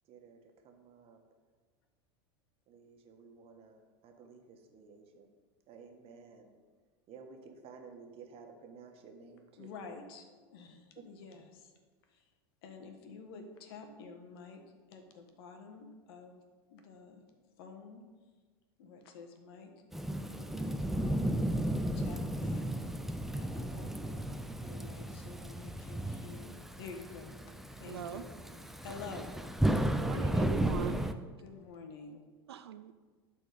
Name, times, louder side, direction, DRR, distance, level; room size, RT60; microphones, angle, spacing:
voice 1, 0.1-0.4 0.6-1.2 2.7-5.3 5.7-6.5 7.1-9.8, right 5 dB, 45° right, 4 dB, 1.5 m, -53 dB
voice 2, 9.6-11.7 12.1-12.2 12.6-14.6 14.9-16.4 16.7-18.0 18.8-19.7 20.1-22.7 23.3-27.3 27.8-28.4 28.8-29.4 31.4-32.3, left 5 dB, 70° left, 5 dB, 1.4 m, -50 dB
Thunderstorm / Rain, 19.9-31.1, right 1 dB, ahead, 0.6 m, -34 dB
voice 3, 27.9-28.2 29.8-31.1 32.5-32.9, right 9 dB, 85° right, 12 dB, 0.5 m, -41 dB
12.0 x 4.3 x 5.1 m, 1.4 s
hypercardioid pair, 90°, 13 cm